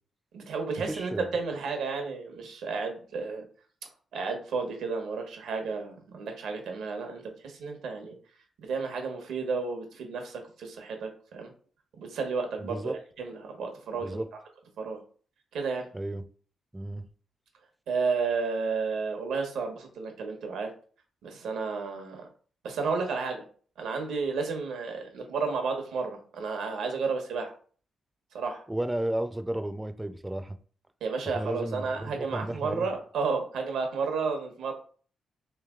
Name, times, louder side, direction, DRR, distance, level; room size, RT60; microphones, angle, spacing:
voice 1, 0.3-3.4 4.1-8.2 8.6-11.5 12.0-14.2 14.8-15.0 15.5-15.9 17.9-20.7 21.2-22.3 22.6-23.4 23.8-27.5 28.3-28.6 31.0-34.7, right 4 dB, 85° right, 4 dB, 1.0 m, -32 dB
voice 2, 0.9-1.3 12.6-12.9 14.0-14.3 15.9-16.2 16.7-17.0 28.7-30.6 31.3-32.9, right 1 dB, 10° right, 9 dB, 0.4 m, -33 dB
3.1 x 3.0 x 3.6 m, 0.43 s
cardioid pair, 90°, 0 cm